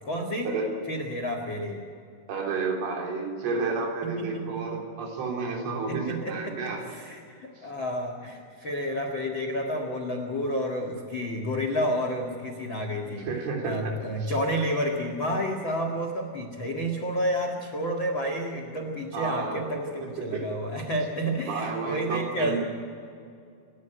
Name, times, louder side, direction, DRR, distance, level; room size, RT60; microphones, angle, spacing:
voice 1, 0.0-0.5 0.9-1.8 4.0-4.8 5.9-13.3 13.6-22.6, equal, 60° left, 3 dB, 1.2 m, -30 dB
voice 2, 2.3-6.8 13.2-13.9 14.2-14.3 19.1-19.6 20.2-20.5 21.5-22.6, right 4 dB, 80° right, 1 dB, 5.8 m, -31 dB
28.5 x 13.0 x 9.2 m, 2.4 s
omnidirectional pair, 5.5 m